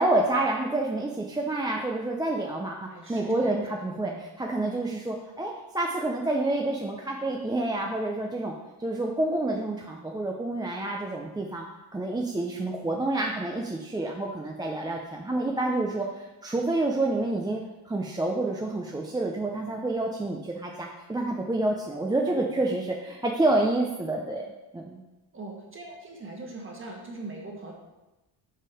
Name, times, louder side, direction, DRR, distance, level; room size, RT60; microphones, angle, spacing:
voice 1, 0.0-11.7 11.9-25.0, right 2 dB, 10° right, 0 dB, 0.5 m, -28 dB
voice 2, 2.9-3.6 4.0-4.2 25.3-27.7, right 2 dB, 30° right, -1 dB, 1.6 m, -41 dB
5.6 x 5.2 x 4.9 m, 1.0 s
cardioid pair, 125°, 42 cm